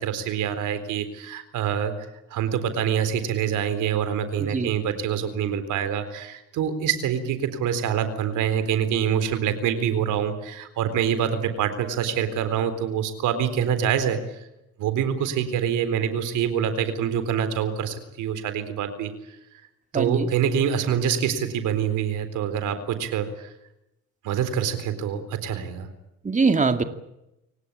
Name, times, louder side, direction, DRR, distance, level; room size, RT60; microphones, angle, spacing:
voice 1, 0.0-1.9 2.3-14.2 14.8-19.1 19.9-23.5 24.2-25.9, right 8 dB, 90° right, 11 dB, 3.9 m, -25 dB
voice 2, 4.4-4.7 19.9-20.3 26.2-26.8, right 4 dB, 25° right, 7 dB, 2.4 m, -22 dB
29.0 x 18.0 x 8.8 m, 0.88 s
cardioid pair, 90°, 30 cm